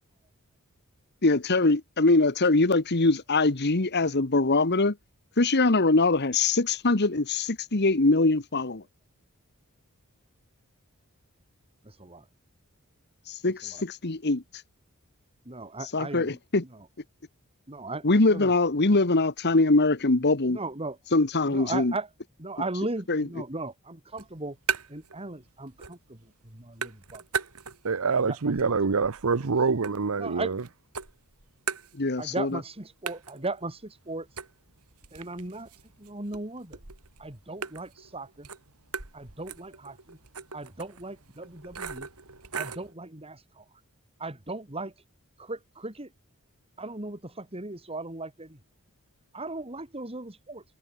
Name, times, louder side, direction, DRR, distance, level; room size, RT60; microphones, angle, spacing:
voice 1, 1.2-4.9 5.4-8.8 13.4-14.4 15.9-16.6 18.0-20.6 21.1-21.9 23.1-23.3 32.0-32.6, left 2 dB, 50° left, 1.4 m, -23 dB
voice 2, 11.8-12.2 13.6-13.8 15.4-16.4 16.7-16.8 17.7-18.5 20.5-21.0 21.5-22.1 22.4-24.6 24.9-26.2 26.4-27.2 28.3-29.1 29.4-29.5 30.2-30.5 32.2-34.3 35.1-35.7 36.0-36.8 37.2-38.5 39.1-40.2 40.5-42.1 42.5-43.6 44.2-44.9 45.4-46.1 46.8-48.6 49.3-50.6, right 2 dB, 25° right, 3.0 m, -37 dB
sound 1, 24.1-25.2 25.5-26.2 26.4-28.0 28.4-30.6 30.9-32.4 32.7-32.8 33.1-42.9, right 6 dB, 90° right, 3.3 m, -38 dB
voice 3, 27.8-30.6, right 4 dB, 75° right, 0.8 m, -25 dB
head